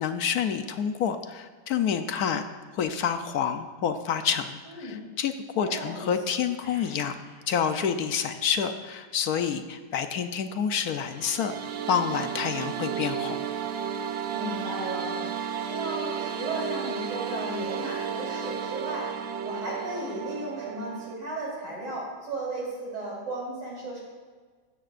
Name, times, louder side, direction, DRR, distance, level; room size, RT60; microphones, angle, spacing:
voice 1, 0.0-2.4 2.7-7.1 7.5-11.5 11.9-13.4, left 7 dB, 65° left, 8 dB, 1.1 m, -28 dB
voice 2, 4.7-5.1 5.6-6.1 14.3-15.2 15.7-19.1 19.4-24.0, right 1 dB, 85° right, -4 dB, 4.6 m, -35 dB
sound 1, 6.6-8.5 8.8-9.0, equal, 30° left, 3.9 m, -54 dB
sound 2, 11.0-21.1, right 7 dB, 65° right, 0.7 m, -33 dB
15.5 x 12.5 x 2.5 m, 1.5 s
omnidirectional pair, 1.8 m